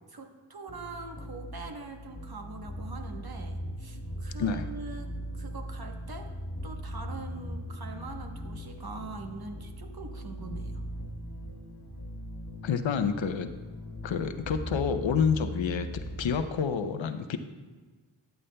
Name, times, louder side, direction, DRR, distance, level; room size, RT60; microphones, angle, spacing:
voice 1, 0.1-6.3 6.6-10.8, right 3 dB, 50° right, 4 dB, 1.1 m, -43 dB
sound 1, 0.7-16.4, equal, 40° left, 1.6 m, -39 dB
voice 2, 12.6-13.5 14.0-15.9 16.2-17.4, left 6 dB, 70° left, 9 dB, 0.7 m, -28 dB
12.5 x 8.1 x 2.2 m, 1.4 s
cardioid pair, 50°, 48 cm